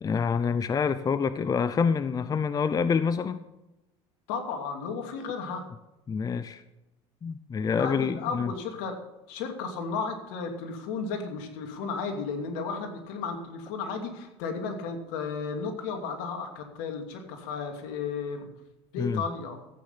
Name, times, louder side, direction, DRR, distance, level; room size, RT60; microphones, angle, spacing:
voice 1, 0.0-3.4 6.1-6.6 7.2-8.5 19.0-19.2, left 6 dB, 25° left, 13 dB, 0.6 m, -27 dB
voice 2, 4.3-5.6 7.8-9.0 9.3-18.5 18.9-19.6, left 5 dB, 75° left, 4 dB, 2.6 m, -34 dB
14.0 x 8.9 x 5.7 m, 0.98 s
supercardioid pair, 95°, 15 cm